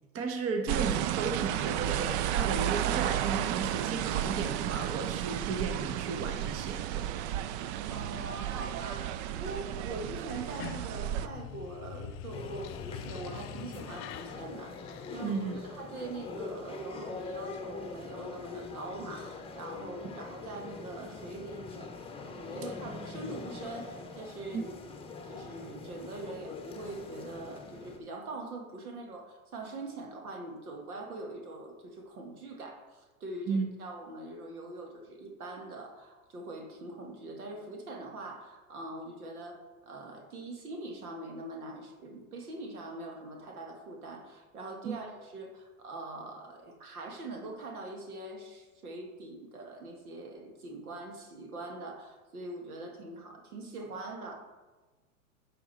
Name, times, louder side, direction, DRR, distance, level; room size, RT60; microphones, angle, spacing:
voice 1, 0.1-7.1 15.2-15.6 24.5-24.6 33.5-33.7 44.8-45.0, right 4 dB, 30° right, 5 dB, 1.1 m, -34 dB
sound 1, 0.7-11.3, right 11 dB, 50° right, 0.5 m, -32 dB
voice 2, 7.9-21.9 22.3-24.9 25.2-54.4, right 2 dB, 85° right, 2 dB, 1.8 m, -43 dB
sound 2, 10.4-15.7, left 9 dB, 30° left, 0.5 m, -44 dB
sound 3, 12.3-28.0, left 4 dB, 15° left, 1.0 m, -43 dB
10.5 x 5.6 x 4.2 m, 1.3 s
hypercardioid pair, 105°, 43 cm